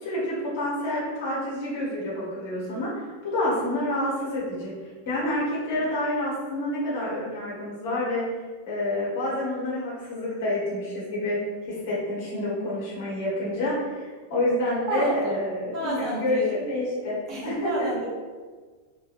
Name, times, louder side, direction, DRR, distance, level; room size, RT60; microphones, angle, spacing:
voice 1, 0.0-8.2 8.7-17.9, left 1 dB, 55° left, -7 dB, 1.2 m, -28 dB
voice 2, 14.9-15.4 15.7-16.6 17.3-18.1, right 1 dB, 35° right, -5 dB, 0.9 m, -30 dB
2.8 x 2.5 x 2.6 m, 1.4 s
figure-of-eight pair, 90°, 0 cm